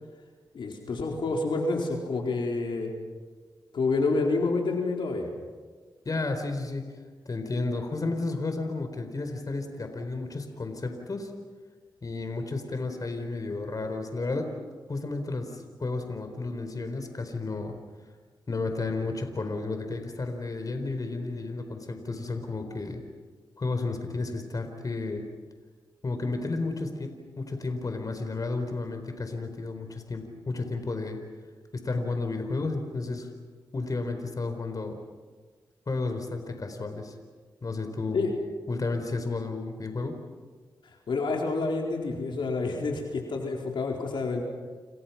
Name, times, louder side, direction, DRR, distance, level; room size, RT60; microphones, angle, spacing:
voice 1, 0.5-2.9 3.7-5.3 38.1-38.3 41.1-44.4, left 3 dB, 80° left, 1 dB, 4.3 m, -28 dB
voice 2, 6.0-6.9 7.3-11.3 12.0-14.6 14.9-17.8 18.5-23.0 23.6-25.3 26.0-31.3 31.7-33.3 33.7-35.0 35.9-37.1 37.6-38.3 38.7-40.2, left 3 dB, 50° left, 6 dB, 4.4 m, -32 dB
29.0 x 29.0 x 6.0 m, 1.5 s
cardioid pair, 60°, 8 cm